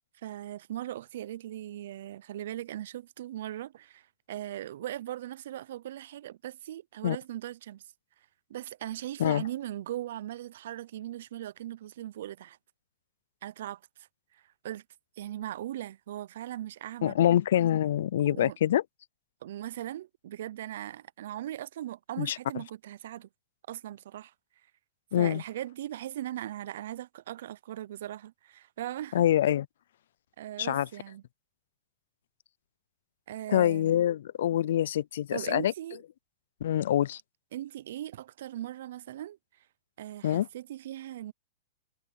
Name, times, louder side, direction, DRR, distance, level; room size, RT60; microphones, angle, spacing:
voice 1, 0.2-7.8 8.5-12.6 13.4-13.8 14.3-14.8 15.2-17.2 18.2-18.6 19.4-23.3 23.7-24.3 25.2-29.3 30.4-31.2 33.3-33.9 35.3-36.0 37.5-39.4 40.0-41.3, right 12 dB, 70° right, 0.5 m, -39 dB
voice 2, 17.0-18.8 22.2-22.4 25.1-25.4 29.1-29.7 30.6-30.9 33.5-35.7 36.6-37.2 40.2-40.5, left 11 dB, 70° left, 0.5 m, -25 dB
hypercardioid pair, 130°, 0 cm